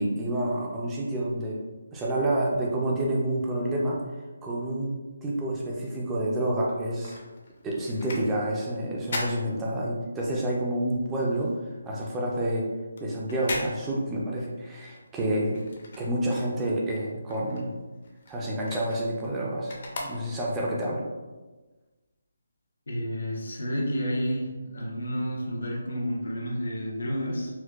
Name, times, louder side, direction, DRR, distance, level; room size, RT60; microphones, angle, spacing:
voice 1, 0.0-1.6 1.9-4.0 4.4-5.0 5.2-7.2 7.6-11.5 11.8-12.7 13.0-15.6 16.0-17.7 18.3-19.7 20.0-21.0, right 1 dB, 10° right, -4 dB, 0.3 m, -28 dB
sound 1, 6.6-10.3 10.6-16.6 16.9-20.7 21.2-21.3, left 2 dB, 40° left, 0.5 m, -40 dB
voice 2, 22.9-24.5 24.7-27.5, equal, 85° left, -3 dB, 0.9 m, -30 dB
4.4 x 2.1 x 2.3 m, 1.2 s
hypercardioid pair, 175°, 0 cm